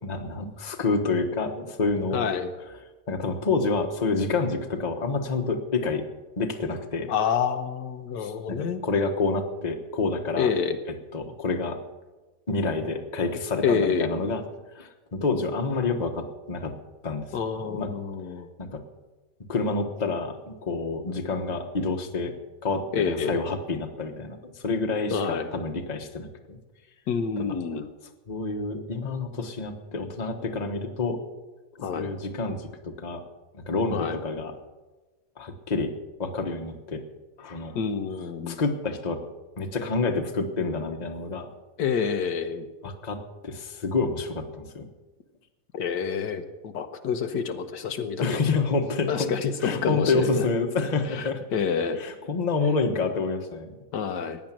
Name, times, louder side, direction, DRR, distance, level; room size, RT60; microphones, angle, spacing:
voice 1, 0.0-2.3 3.1-6.0 6.4-7.1 8.1-10.5 11.1-11.8 12.5-14.4 14.7-16.7 17.0-17.9 18.6-18.8 19.5-22.3 22.6-26.6 27.4-27.6 28.3-31.2 31.9-33.2 33.5-34.5 35.4-35.9 36.2-37.0 37.4-37.8 38.4-39.2 39.6-41.5 42.8-43.2 43.4-44.9 48.2-49.3 49.6-51.4 52.0-53.8, left 3 dB, 25° left, 4 dB, 1.2 m, -28 dB
voice 2, 2.1-2.5 7.1-8.8 10.4-10.8 13.6-14.1 17.3-18.5 22.9-23.3 25.1-25.5 27.1-27.9 31.8-32.1 33.9-34.2 37.7-38.6 41.8-42.7 45.7-48.4 49.1-50.5 51.1-51.2 51.5-52.0 53.9-54.4, left 6 dB, 85° left, 7 dB, 1.6 m, -27 dB
16.0 x 10.0 x 7.5 m, 1.2 s
omnidirectional pair, 1.8 m